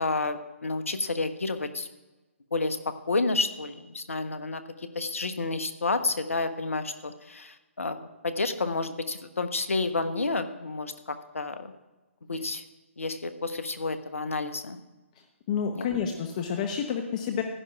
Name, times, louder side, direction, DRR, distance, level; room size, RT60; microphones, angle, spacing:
voice 1, 0.0-1.9 2.5-8.0 8.2-11.7 12.3-12.6 13.0-14.8 15.7-15.9, left 3 dB, 75° left, 10 dB, 0.9 m, -30 dB
voice 2, 15.5-17.4, left 7 dB, 35° left, 5 dB, 0.8 m, -29 dB
15.0 x 10.5 x 2.4 m, 1.1 s
figure-of-eight pair, 140°, 7 cm